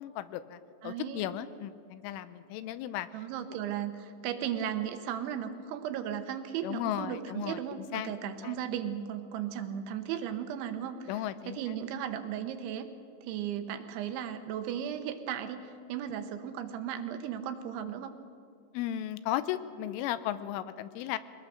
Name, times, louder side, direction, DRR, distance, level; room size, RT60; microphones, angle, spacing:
voice 1, 0.0-3.1 6.6-8.1 8.4-8.6 11.1-11.6 18.7-21.2, left 12 dB, 85° left, 13 dB, 3.2 m, -35 dB
voice 2, 0.8-1.3 3.1-11.1 11.5-12.9 13.2-15.6 15.9-18.2, right 9 dB, 80° right, 8 dB, 3.2 m, -36 dB
23.0 x 19.5 x 6.4 m, 2.5 s
omnidirectional pair, 5.6 m